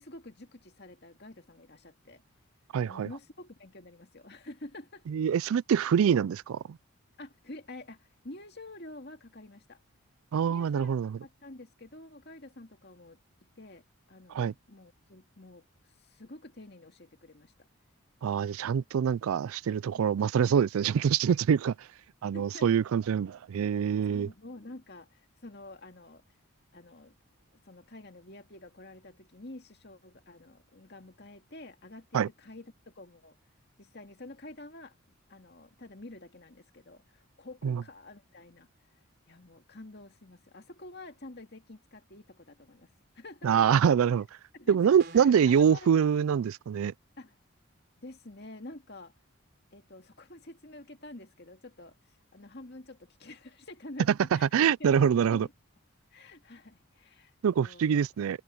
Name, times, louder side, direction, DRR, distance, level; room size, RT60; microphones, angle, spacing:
voice 1, 0.0-2.2 2.8-5.0 7.2-9.8 10.5-13.2 13.6-15.6 16.0-17.7 19.9-20.1 22.3-22.7 24.1-26.2 26.7-27.1 27.6-33.4 33.8-35.0 35.3-38.7 39.3-43.8 44.5-46.0 47.2-47.4 48.0-49.1 49.7-52.0 52.3-54.5 54.9-55.5 56.1-58.0, left 2 dB, 50° left, 2.3 m, -48 dB
voice 2, 2.7-3.1 5.1-6.8 10.3-11.1 14.3-14.5 18.2-21.7 22.2-24.3 32.1-32.3 37.6-37.8 43.4-44.3 44.7-46.9 54.3-55.5 57.4-58.4, right 7 dB, 80° right, 0.3 m, -25 dB
sound 1, 45.0-45.5, right 2 dB, 50° right, 3.6 m, -47 dB
head